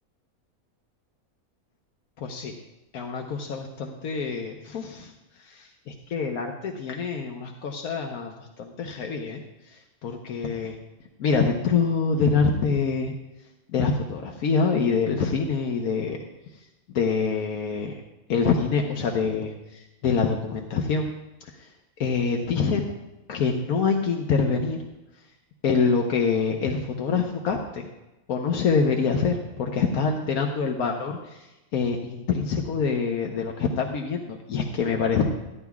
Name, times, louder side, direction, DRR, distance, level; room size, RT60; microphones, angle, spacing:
voice 1, 2.2-2.5 2.9-5.1 5.4-10.8 11.2-13.1 13.7-16.2 16.9-18.0 18.3-21.1 21.4-21.7 22.0-22.9 23.3-24.8 25.6-27.8 28.3-35.3, left 5 dB, 80° left, 2 dB, 1.3 m, -25 dB
15.5 x 11.0 x 2.4 m, 1.0 s
omnidirectional pair, 1.5 m